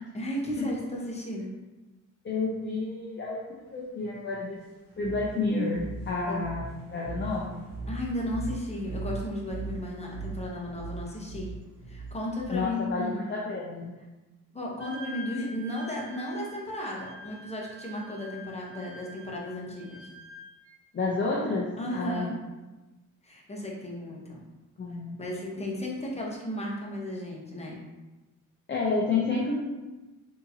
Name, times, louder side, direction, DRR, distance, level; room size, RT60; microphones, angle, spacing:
voice 1, 0.1-1.5 6.2-6.4 7.9-11.5 11.9-13.2 14.5-20.1 21.8-22.3 23.2-24.5 25.2-27.8, left 1 dB, 20° left, -3 dB, 0.9 m, -34 dB
voice 2, 2.2-3.4 3.7-4.6 5.0-6.6 6.9-7.7 12.5-13.9 20.9-21.7 21.9-22.3 24.8-25.2 28.7-29.6, left 3 dB, 35° left, -4 dB, 0.6 m, -30 dB
sound 1, 4.9-12.9, right 3 dB, 65° right, 0.9 m, -39 dB
Wind instrument woodwind instrument, 14.8-20.8, left 1 dB, 5° right, 1.4 m, -46 dB
3.6 x 2.8 x 2.7 m, 1.1 s
cardioid pair, 80°, 35 cm